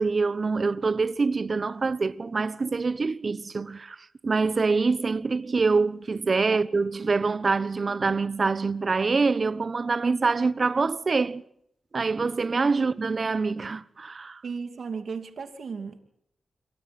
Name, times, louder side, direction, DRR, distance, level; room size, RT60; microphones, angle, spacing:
voice 1, 0.0-4.0 4.2-11.4 11.9-14.4, right 4 dB, 50° right, 1.1 m, -25 dB
voice 2, 14.4-16.0, right 5 dB, 75° right, 2.7 m, -35 dB
28.5 x 23.5 x 4.4 m
cardioid pair, 60°, 0 cm